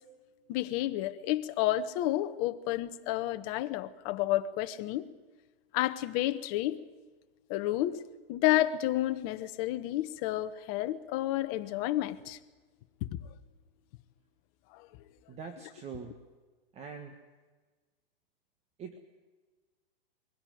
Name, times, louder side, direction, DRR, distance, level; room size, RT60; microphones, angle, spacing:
voice 1, 0.5-5.1 5.7-6.8 7.5-8.0 8.3-12.4 13.1-13.2 14.7-14.9, left 14 dB, 35° left, 1.2 m, -30 dB
voice 2, 15.3-16.2 16.7-17.2 18.8-19.0, right 5 dB, 20° right, 1.6 m, -43 dB
22.5 x 16.5 x 9.3 m
hypercardioid pair, 140°, 29 cm